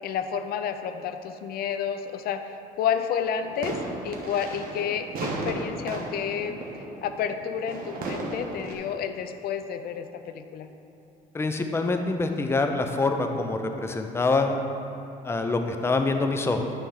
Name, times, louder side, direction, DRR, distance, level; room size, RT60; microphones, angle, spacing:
voice 1, 0.0-3.8 4.0-6.6 7.0-10.7, left 7 dB, 65° left, 8 dB, 0.5 m, -30 dB
sound 1, 3.4-8.7, right 2 dB, 60° right, 1.2 m, -35 dB
voice 2, 11.3-14.6 15.2-16.6, left 3 dB, 15° left, 5 dB, 0.5 m, -25 dB
9.9 x 3.5 x 5.7 m, 2.9 s
cardioid pair, 110°, 17 cm